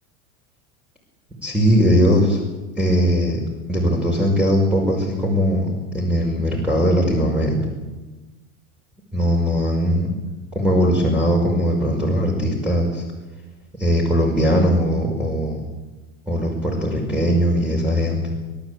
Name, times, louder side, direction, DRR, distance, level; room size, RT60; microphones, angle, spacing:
voice 1, 1.4-2.4 2.8-3.4 3.7-7.6 9.1-10.1 10.5-13.0 13.8-15.6 16.3-18.3, equal, 5° right, -2 dB, 5.7 m, -19 dB
29.0 x 13.0 x 8.6 m, 1.2 s
hypercardioid pair, 100°, 44 cm